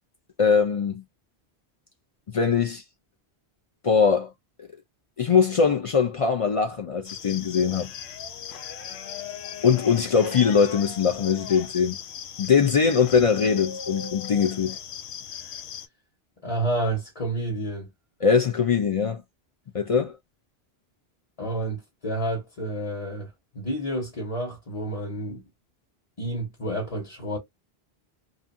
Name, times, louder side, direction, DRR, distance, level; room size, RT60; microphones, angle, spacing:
voice 1, 0.4-1.0 2.3-2.8 3.8-4.3 5.2-7.9 9.6-12.0 12.4-14.8 18.2-19.2 19.7-20.2, left 6 dB, 55° left, 0.4 m, -21 dB
sound 1, 7.0-15.9, left 8 dB, 85° left, 0.9 m, -38 dB
voice 2, 16.4-17.9 21.4-23.3 23.5-25.4 26.2-27.4, right 1 dB, 35° left, 1.1 m, -29 dB
2.6 x 2.5 x 2.5 m
omnidirectional pair, 1.1 m